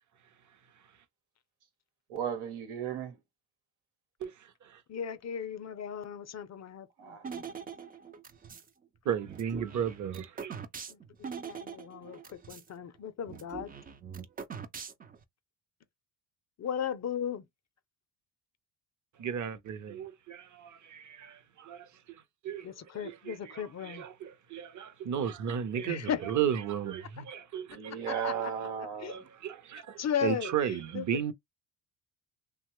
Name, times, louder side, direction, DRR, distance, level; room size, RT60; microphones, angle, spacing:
voice 1, 2.1-3.2 7.0-7.3 27.7-29.2, right 8 dB, 90° right, 1.1 m, -35 dB
voice 2, 4.2-4.8 9.0-10.6 19.2-27.9 28.2-28.5 29.1-31.3, right 8 dB, 40° right, 0.7 m, -35 dB
voice 3, 4.9-7.5 10.9-13.7 16.6-17.4 22.6-24.0 25.8-26.2 27.2-27.3 28.1-28.5 29.0-29.2 30.0-31.0, left 8 dB, 35° left, 0.5 m, -36 dB
sound 1, 7.2-8.7 9.3-12.7 12.9-13.0 13.3-15.2, right 6 dB, 20° right, 0.3 m, -43 dB
2.9 x 2.2 x 2.9 m
cardioid pair, 90°, 47 cm